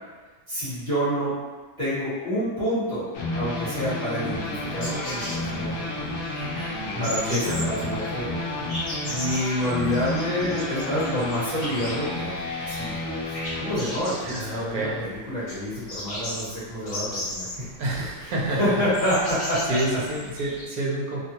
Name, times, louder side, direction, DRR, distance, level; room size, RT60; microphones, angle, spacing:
voice 1, 0.5-1.3 1.8-3.1 3.3-5.9 7.0-8.3 9.1-13.0 13.6-17.6 18.2-19.6 19.9-20.0, equal, 30° right, -12 dB, 1.4 m, -28 dB
sound 1, 3.1-13.8, left 2 dB, 70° left, 0.8 m, -31 dB
sound 2, 4.3-20.6, left 1 dB, 40° left, 1.1 m, -37 dB
voice 2, 6.9-7.7 14.2-15.1 17.8-18.8 19.7-21.2, right 1 dB, 70° right, -4 dB, 1.1 m, -28 dB
sound 3, 7.6-9.7 10.2-11.3 13.1-14.5, equal, 5° right, 0.7 m, -41 dB
2.9 x 2.2 x 2.8 m, 1.3 s
omnidirectional pair, 1.8 m